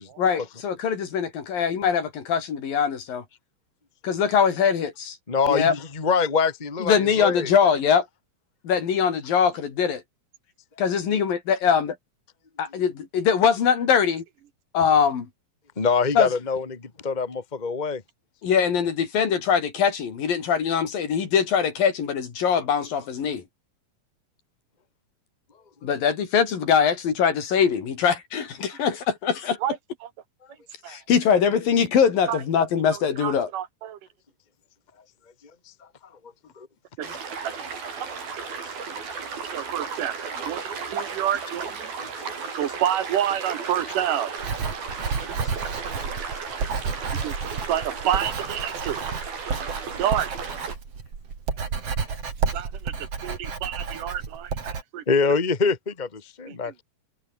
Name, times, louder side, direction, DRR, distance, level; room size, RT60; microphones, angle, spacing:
voice 1, 0.2-3.2 4.0-5.2 5.5-5.7 6.8-8.1 8.6-10.0 10.8-12.0 12.6-14.2 14.7-15.3 16.1-16.3 18.4-23.4 25.8-29.8 30.9-33.5 42.4-42.5, left 7 dB, 75° left, 5.1 m, -22 dB
voice 2, 5.3-7.5 15.8-18.0 36.6-36.7 39.1-39.2 42.2-42.3 45.1-45.2 45.4-45.5 55.1-56.8, left 5 dB, 40° left, 0.6 m, -25 dB
sound 1, 37.0-50.8, right 5 dB, 85° right, 7.0 m, -34 dB
voice 3, 39.5-40.1 40.5-40.6 40.9-41.6 42.6-44.3 47.2-47.3 47.7-49.0 50.0-50.3 52.5-52.7 53.2-53.4 53.6-53.7 54.9-55.0, right 10 dB, 70° right, 2.9 m, -26 dB
Writing, 44.4-54.8, right 5 dB, 45° right, 4.3 m, -31 dB
omnidirectional pair, 4.1 m